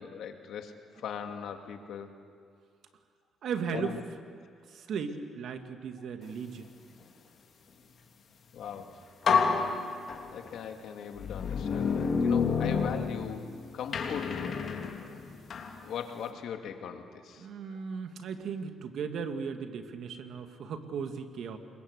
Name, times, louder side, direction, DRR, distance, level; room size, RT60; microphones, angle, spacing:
voice 1, 0.0-2.1 3.7-4.0 8.5-8.9 10.3-14.6 15.8-17.8, left 7 dB, 75° left, 5 dB, 2.3 m, -40 dB
voice 2, 3.4-4.0 4.7-6.7 17.4-21.6, right 6 dB, 70° right, 6 dB, 2.2 m, -36 dB
sound 1, 8.7-8.8 9.2-10.5 11.2-13.5 13.9-15.7, left 5 dB, 55° left, 3.3 m, -29 dB
27.5 x 22.5 x 8.2 m, 2.2 s
cardioid pair, 90°, 0 cm